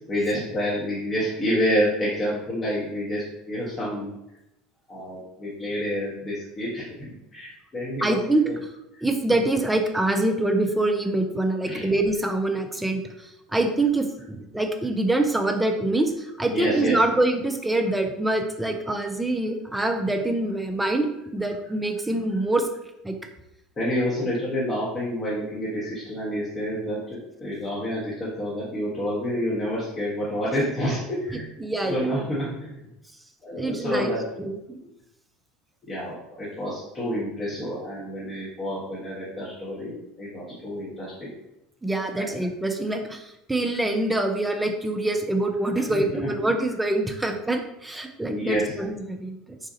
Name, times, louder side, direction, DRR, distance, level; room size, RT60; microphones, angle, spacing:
voice 1, 0.1-4.1 4.9-8.2 11.7-11.9 16.5-17.0 23.8-31.5 31.9-32.8 33.4-34.2 35.9-41.3 42.1-42.3 45.9-46.3 48.3-48.7, equal, 30° left, -7 dB, 1.0 m, -28 dB
voice 2, 8.0-8.4 9.0-22.7 23.0-23.2 31.3-32.2 33.6-34.8 41.8-49.4, right 2 dB, 10° right, 4 dB, 0.5 m, -25 dB
3.9 x 2.4 x 2.7 m, 0.87 s
figure-of-eight pair, 70°, 0 cm